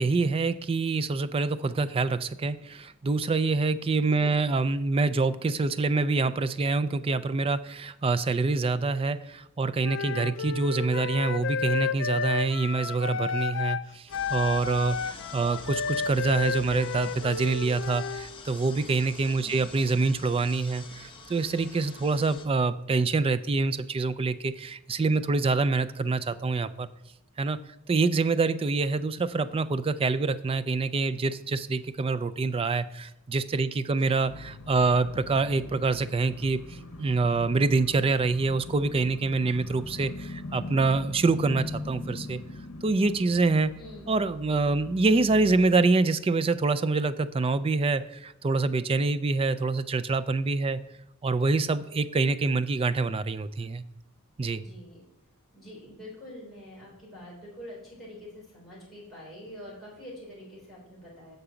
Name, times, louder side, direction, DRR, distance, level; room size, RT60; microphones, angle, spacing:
voice 1, 0.0-26.9 27.4-27.6 27.9-42.4 42.8-43.7 44.1-50.8 51.2-53.8 54.4-54.6, right 3 dB, 25° right, 14 dB, 0.3 m, -26 dB
voice 2, 4.1-4.4 19.3-19.7 33.9-34.1 43.8-44.1 54.6-55.0 55.5-61.4, left 1 dB, ahead, -8 dB, 3.4 m, -45 dB
Wind instrument woodwind instrument, 9.8-13.9 14.1-18.3, left 6 dB, 60° left, 0.4 m, -32 dB
sound 1, 14.1-22.4, left 3 dB, 25° left, 0.9 m, -45 dB
sound 2, 34.2-45.7, left 2 dB, 85° left, 0.8 m, -41 dB
6.7 x 4.9 x 7.0 m, 0.89 s
head